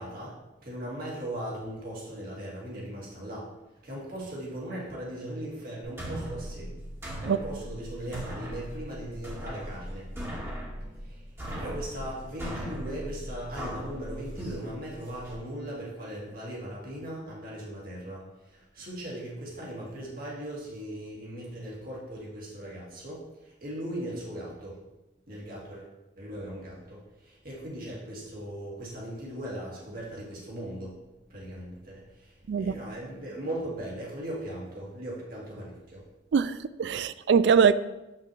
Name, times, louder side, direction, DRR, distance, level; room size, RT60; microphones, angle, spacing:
voice 1, 0.0-3.5 3.8-6.7 7.2-10.1 11.0-24.8 25.3-31.0 31.3-36.0, right 1 dB, 55° right, 2.0 m, -39 dB
sound 1, 5.8-15.3, equal, 15° right, 1.5 m, -39 dB
voice 2, 36.8-37.7, right 6 dB, 70° right, 0.3 m, -22 dB
7.6 x 5.8 x 3.3 m
head